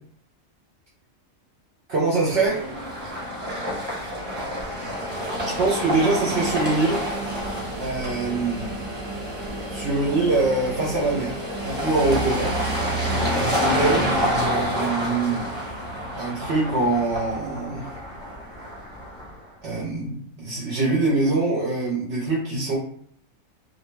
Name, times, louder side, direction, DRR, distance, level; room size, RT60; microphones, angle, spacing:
voice 1, 1.9-2.6 3.1-3.2 5.6-7.0 7.8-8.9 9.7-12.6 13.5-15.5 16.2-18.0 19.6-22.8, right 3 dB, 60° right, -5 dB, 0.8 m, -24 dB
sound 1, 2.4-19.4, equal, 10° right, 0.8 m, -28 dB
2.5 x 2.1 x 3.0 m, 0.63 s
omnidirectional pair, 1.4 m